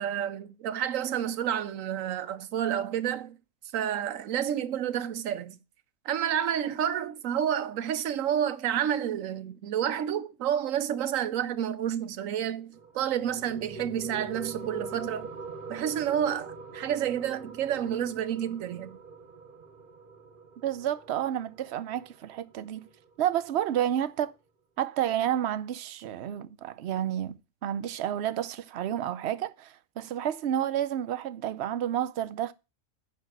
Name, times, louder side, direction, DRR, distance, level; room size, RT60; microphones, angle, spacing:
voice 1, 0.0-3.4 3.7-5.6 6.0-15.3 15.7-19.0, right 9 dB, 90° right, 1.1 m, -30 dB
sound 1, 12.7-23.7, right 4 dB, 45° right, 1.1 m, -43 dB
voice 2, 20.6-22.9 23.2-24.3 24.8-32.5, right 11 dB, 65° right, 0.9 m, -30 dB
9.4 x 5.3 x 6.4 m
omnidirectional pair, 1.3 m